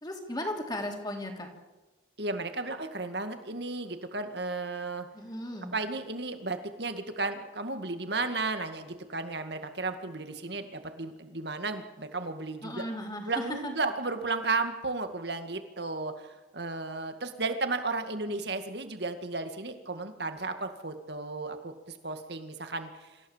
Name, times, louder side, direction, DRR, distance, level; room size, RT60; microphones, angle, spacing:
voice 1, 0.0-1.5 5.1-5.7 12.6-13.7, left 1 dB, 20° left, 1 dB, 3.2 m, -36 dB
voice 2, 2.2-5.1 5.7-12.9 13.2-23.1, right 3 dB, 60° right, 7 dB, 2.1 m, -34 dB
26.0 x 15.5 x 7.4 m, 1.1 s
head